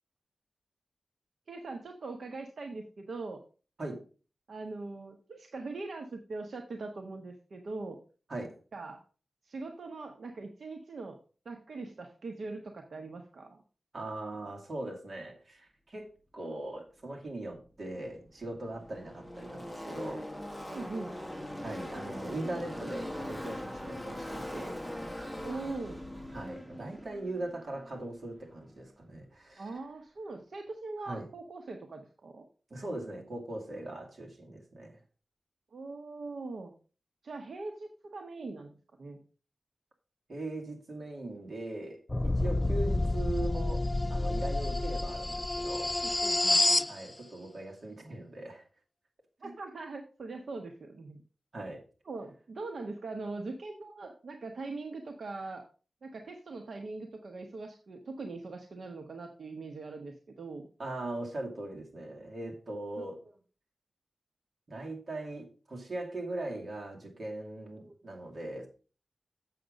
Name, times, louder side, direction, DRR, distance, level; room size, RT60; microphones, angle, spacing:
voice 1, 1.5-3.4 4.5-8.0 8.7-9.0 9.4-11.2 11.4-13.6 20.7-21.2 25.4-26.0 29.6-32.5 35.7-36.7 37.2-39.2 42.5-42.6 46.0-46.9 49.4-51.2 52.0-55.7 56.0-60.7 63.0-63.1 67.8-67.9, right 3 dB, 80° right, 1.0 m, -41 dB
voice 2, 13.9-20.3 21.6-25.2 26.3-29.7 31.0-31.3 32.7-35.0 40.3-46.0 46.9-48.6 49.4-49.5 51.5-51.8 60.8-63.2 64.7-68.7, right 2 dB, 55° right, 2.4 m, -40 dB
Car passing by / Race car auto racing, 17.7-17.8 17.9-28.5, left 1 dB, ahead, 1.3 m, -41 dB
sound 1, 42.1-46.9, left 2 dB, 25° left, 0.4 m, -28 dB
7.6 x 6.6 x 5.1 m
wide cardioid pair, 90°, 0 cm